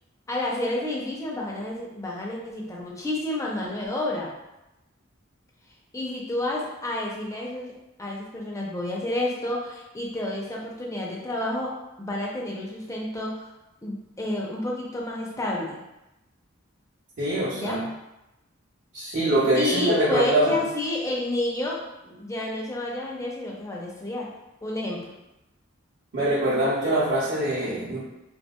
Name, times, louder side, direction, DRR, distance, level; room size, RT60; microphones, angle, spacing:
voice 1, 0.3-4.3 5.9-7.7 8.0-11.7 12.0-13.5 13.8-15.8 17.5-17.8 19.0-19.1 19.5-21.8 22.0-24.3 24.6-25.0, left 1 dB, 15° left, -2 dB, 0.5 m, -30 dB
voice 2, 17.2-17.9 18.9-20.6 26.1-28.0, right 1 dB, 60° right, -11 dB, 0.8 m, -23 dB
2.8 x 2.7 x 2.2 m, 0.94 s
head